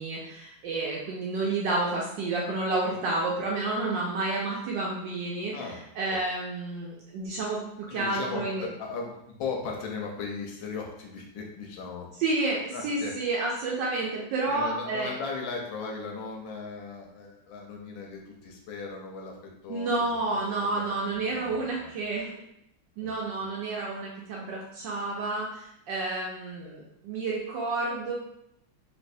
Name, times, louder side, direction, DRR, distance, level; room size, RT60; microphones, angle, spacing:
voice 1, 0.0-5.5 6.0-8.6 12.2-15.1 19.7-22.3 23.0-28.1, right 3 dB, 70° right, -4 dB, 1.2 m, -30 dB
voice 2, 5.5-5.8 6.1-6.2 7.9-12.1 12.7-13.1 14.5-22.0 23.0-23.2, left 4 dB, 80° left, 1 dB, 1.4 m, -37 dB
3.1 x 3.1 x 2.6 m, 0.78 s
omnidirectional pair, 2.2 m